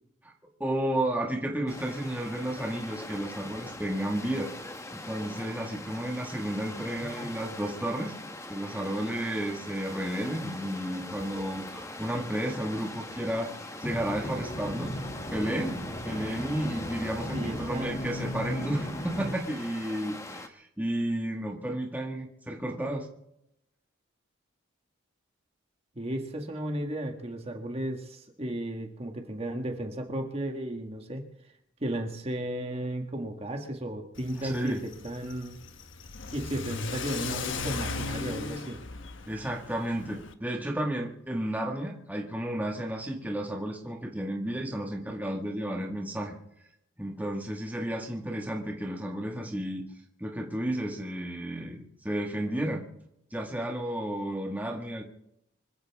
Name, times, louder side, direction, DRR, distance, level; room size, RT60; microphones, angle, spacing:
voice 1, 0.6-4.5 4.9-8.1 8.5-14.9 15.3-15.8 16.0-23.1 34.4-34.8 39.3-46.3 47.0-49.9 50.2-52.8 53.3-55.0, right 1 dB, 10° right, 0 dB, 1.7 m, -32 dB
sound 1, 1.7-20.5, left 2 dB, 15° left, 1.2 m, -42 dB
voice 2, 7.0-7.3 17.3-17.9 26.0-31.3 31.8-35.5 36.3-38.8, right 1 dB, 30° right, 3 dB, 1.7 m, -34 dB
sound 2, 13.8-19.3, equal, 30° left, 2.4 m, -36 dB
Car / Accelerating revving vroom, 34.2-40.3, left 3 dB, 65° left, 1.2 m, -37 dB
25.5 x 14.5 x 3.6 m, 0.80 s
head